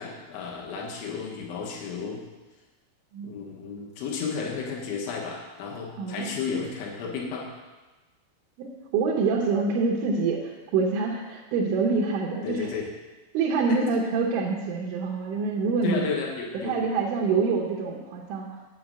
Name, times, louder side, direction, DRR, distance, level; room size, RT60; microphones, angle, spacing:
voice 1, 0.0-2.2 3.2-7.5 12.4-12.9 13.7-13.9 15.8-16.7, left 5 dB, 80° left, -2 dB, 3.7 m, -33 dB
voice 2, 6.0-6.4 8.6-12.7 13.3-16.1 16.6-18.5, right 4 dB, 85° right, -1 dB, 3.4 m, -26 dB
8.6 x 5.5 x 7.6 m, 1.2 s
omnidirectional pair, 5.4 m